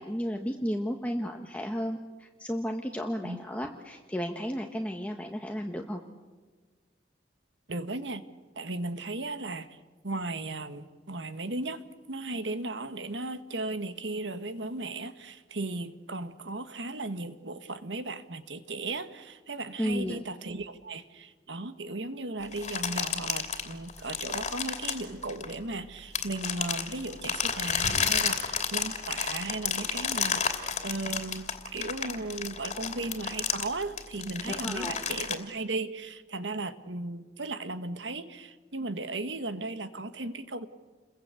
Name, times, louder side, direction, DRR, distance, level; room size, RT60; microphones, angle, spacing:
voice 1, 0.0-6.0 19.8-20.2 34.4-35.0, equal, 10° left, 2 dB, 1.4 m, -33 dB
voice 2, 7.7-8.2 8.6-9.8 10.0-40.7, right 2 dB, 90° right, 10 dB, 1.7 m, -36 dB
sound 1, 22.5-25.7 26.2-35.3, left 6 dB, 40° left, 2.9 m, -31 dB
30.0 x 22.5 x 8.4 m, 1.3 s
head